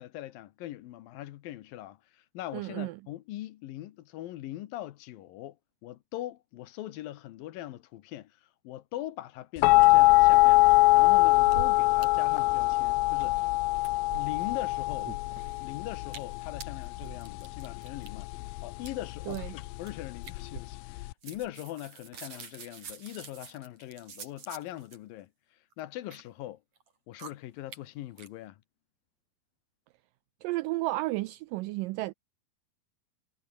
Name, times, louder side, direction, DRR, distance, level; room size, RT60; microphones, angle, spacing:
voice 1, 0.0-5.6 5.8-10.7 10.9-13.5 14.1-15.1 15.6-18.3 18.6-26.6 27.1-28.6, left 14 dB, 70° left, 2.6 m, -41 dB
voice 2, 2.5-3.0 19.3-19.5 30.4-32.1, right 20 dB, 85° right, 1.9 m, -32 dB
sound 1, 9.6-21.1, left 20 dB, 90° left, 1.9 m, -23 dB
sound 2, 11.3-12.1 12.3-12.4 12.7-13.5 13.8-14.6 15.0-15.6 16.0-16.3 16.6-18.1 18.8-18.9 19.3-19.5 19.9-20.0 20.2-21.0 21.2-25.0 25.7-26.2 26.8-26.9 27.2-27.3 27.7-27.8 28.2-28.3, right 5 dB, 45° right, 4.8 m, -45 dB
omnidirectional pair, 4.4 m